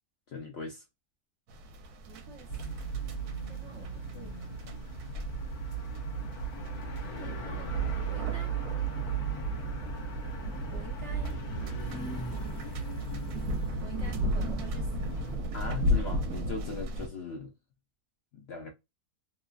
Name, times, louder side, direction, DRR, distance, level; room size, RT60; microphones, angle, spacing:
voice 1, 0.3-0.8 15.5-17.5 18.3-18.7, left 4 dB, 60° left, 0.7 m, -39 dB
sound 1, 1.5-17.1, left 1 dB, 80° right, 1.2 m, -36 dB
voice 2, 2.1-2.5 3.5-4.5 7.2-8.5 10.7-11.4 13.8-14.9, right 5 dB, 65° right, 0.7 m, -48 dB
sound 2, 2.5-15.4, right 5 dB, 75° left, 1.2 m, -36 dB
3.0 x 2.4 x 2.3 m
omnidirectional pair, 1.6 m